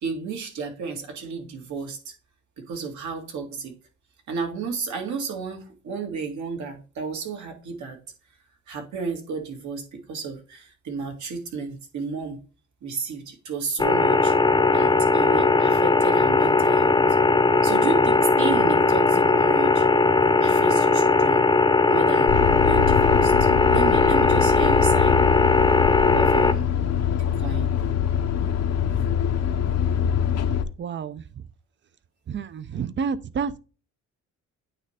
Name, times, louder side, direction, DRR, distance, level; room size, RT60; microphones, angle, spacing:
voice 1, 0.0-2.1 2.6-3.7 4.3-8.0 8.7-12.4 12.8-14.4 14.7-17.0 17.6-19.9 20.4-21.5 21.9-22.3 22.7-25.2 26.1-26.7 27.2-27.7 28.4-28.5, right 5 dB, 70° right, 2.1 m, -32 dB
sound 1, 13.8-26.5, left 3 dB, 15° left, 0.8 m, -19 dB
sound 2, 22.3-30.6, left 8 dB, 60° left, 0.8 m, -24 dB
voice 2, 30.8-31.2 32.3-33.6, right 6 dB, 40° right, 0.6 m, -29 dB
9.0 x 3.2 x 5.0 m
cardioid pair, 100°, 30 cm